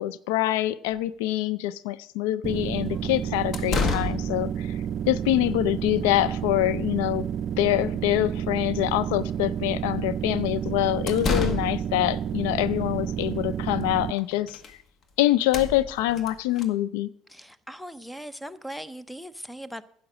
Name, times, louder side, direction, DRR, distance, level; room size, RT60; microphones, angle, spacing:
voice 1, 0.0-4.7 5.1-7.3 7.6-14.6 15.2-17.1, left 14 dB, 85° left, 17 dB, 0.5 m, -25 dB
sound 1, 0.9-1.0 2.9-3.0 3.5-4.4 10.8-12.0 13.8-13.9 14.2-14.8 15.0-15.1 15.4-16.7, left 4 dB, 50° left, 1.5 m, -30 dB
sound 2, 2.4-14.1, right 9 dB, 50° right, 0.4 m, -30 dB
voice 2, 17.3-19.8, equal, 5° left, 15 dB, 0.8 m, -39 dB
11.0 x 8.2 x 6.2 m, 0.66 s
supercardioid pair, 85°, 0 cm